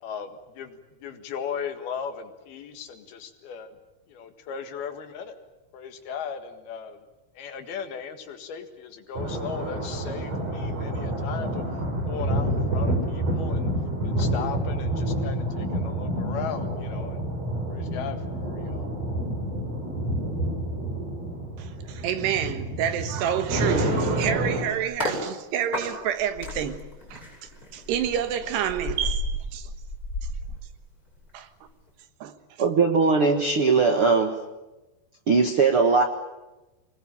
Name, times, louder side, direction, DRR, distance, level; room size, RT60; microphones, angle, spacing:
voice 1, 0.0-3.8 4.1-5.4 5.7-7.0 7.4-11.6 12.1-13.7 14.0-17.2 17.7-18.9, left 7 dB, 70° left, 3.6 m, -37 dB
sound 1, 9.2-24.6, right 1 dB, 40° right, 6.4 m, -28 dB
voice 2, 21.6-26.8 27.1-27.2 27.7-29.7 31.3-31.5 32.2-32.3, right 9 dB, 85° right, 3.5 m, -28 dB
sound 2, 23.9-25.2 25.7-31.3 31.6-31.9, left 1 dB, 20° left, 7.8 m, -34 dB
voice 3, 32.6-34.3 35.3-36.0, right 4 dB, 60° right, 1.5 m, -20 dB
25.0 x 20.5 x 9.0 m
omnidirectional pair, 4.8 m